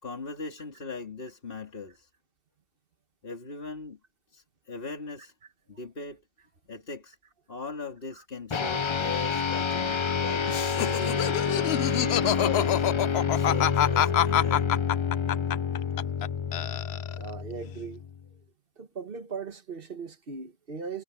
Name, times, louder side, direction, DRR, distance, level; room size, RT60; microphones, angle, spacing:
voice 1, 0.0-2.1 3.2-4.0 4.3-5.3 5.7-6.2 6.7-7.2 7.5-11.3 12.2-14.9, left 4 dB, 60° left, 2.9 m, -39 dB
sound 1, 8.5-18.2, left 6 dB, 35° left, 0.6 m, -28 dB
Laughter, 10.5-16.3 16.5-17.3, left 11 dB, 80° left, 0.9 m, -26 dB
voice 2, 17.1-18.0 18.8-21.0, right 5 dB, 60° right, 1.7 m, -38 dB
omnidirectional pair, 1.1 m